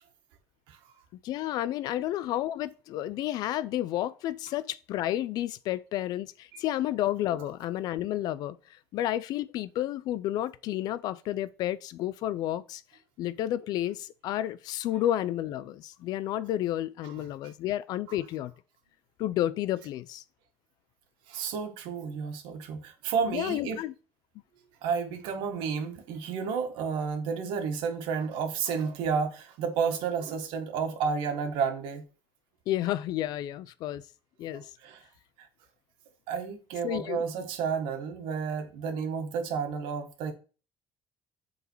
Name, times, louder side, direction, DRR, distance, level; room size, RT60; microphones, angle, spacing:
voice 1, 1.2-8.6 8.9-12.8 13.2-18.5 19.2-20.2 23.2-23.9 32.7-34.0 34.4-34.7 36.8-37.2, left 13 dB, 50° left, 0.4 m, -31 dB
voice 2, 17.0-17.5 21.3-23.8 24.8-32.0 34.5-35.1 35.4-35.5 36.3-40.3, right 6 dB, 75° right, 1.7 m, -31 dB
8.4 x 4.0 x 4.6 m
cardioid pair, 175°, 8 cm